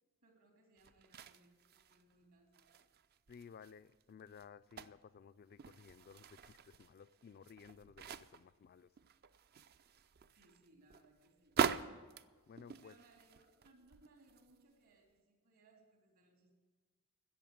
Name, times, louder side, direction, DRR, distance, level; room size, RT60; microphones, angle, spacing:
voice 1, 0.2-2.8 10.3-11.6 12.8-16.5, right 2 dB, 70° right, 2 dB, 3.6 m, -68 dB
sound 1, 0.8-2.1 2.5-5.1 5.5-8.6 9.0-14.6 15.1-15.2, right 6 dB, 45° right, 0.5 m, -43 dB
voice 2, 3.3-8.9 12.5-12.9, left 6 dB, 45° left, 15 dB, 0.3 m, -57 dB
16.5 x 7.0 x 9.2 m, 1.4 s
head